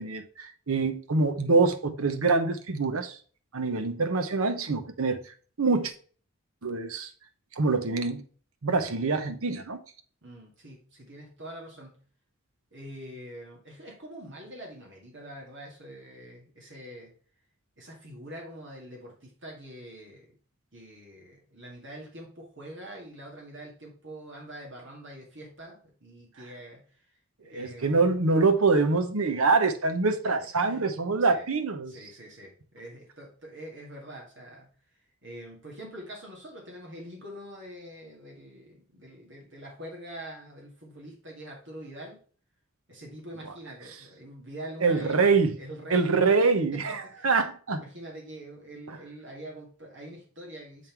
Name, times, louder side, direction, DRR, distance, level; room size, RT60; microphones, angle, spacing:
voice 1, 0.0-3.2 3.5-5.2 5.6-5.9 6.6-7.1 7.6-8.2 8.6-9.8 27.5-31.9 44.8-45.6 45.9-47.8 48.9-49.0, right 4 dB, 75° right, 0.9 m, -25 dB
voice 2, 10.2-12.0 12.7-17.1 17.8-20.3 20.7-27.1 27.4-28.2 30.5-30.9 31.2-31.5 31.9-34.7 35.2-42.2 42.9-45.2 45.6-46.1 46.4-47.3 47.8-50.9, right 1 dB, 55° right, 2.1 m, -44 dB
7.4 x 3.8 x 4.5 m
head